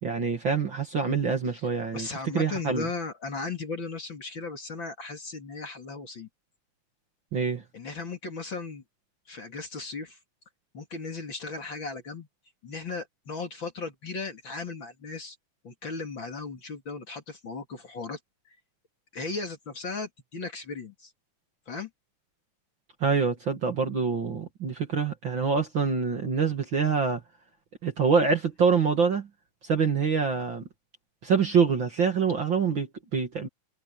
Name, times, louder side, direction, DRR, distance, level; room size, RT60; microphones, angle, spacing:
voice 1, 0.0-2.1 2.3-2.9 7.3-7.6 23.0-27.2 27.8-29.3 29.6-30.6 31.2-33.5, right 5 dB, 40° right, 2.4 m, -25 dB
voice 2, 1.9-6.3 7.7-8.8 9.3-10.2 10.7-12.3 12.6-15.4 15.6-18.2 19.1-21.1 21.7-21.9, left 4 dB, 40° left, 3.0 m, -36 dB
omnidirectional pair, 3.6 m